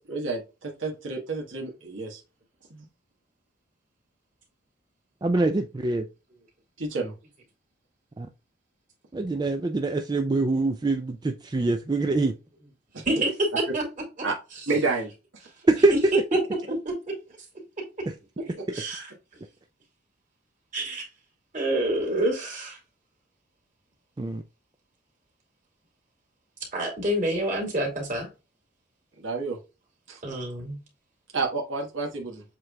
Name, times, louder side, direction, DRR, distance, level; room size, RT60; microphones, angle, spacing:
voice 1, 0.1-2.2 2.7-2.8 6.8-7.1 12.9-13.0 14.2-14.3 14.7-15.1 29.2-29.6 30.1-30.2 31.3-32.4, right 3 dB, 75° right, 0 dB, 1.3 m, -30 dB
voice 2, 5.2-6.0 8.2-8.3 9.1-12.3 15.7-15.9 24.2-24.4, right 2 dB, 20° right, 6 dB, 0.3 m, -24 dB
voice 3, 18.4-19.1 20.7-21.1 21.5-22.8 26.7-28.3 30.2-30.8, right 1 dB, 40° right, -1 dB, 2.4 m, -28 dB
7.4 x 3.2 x 2.2 m, 0.29 s
head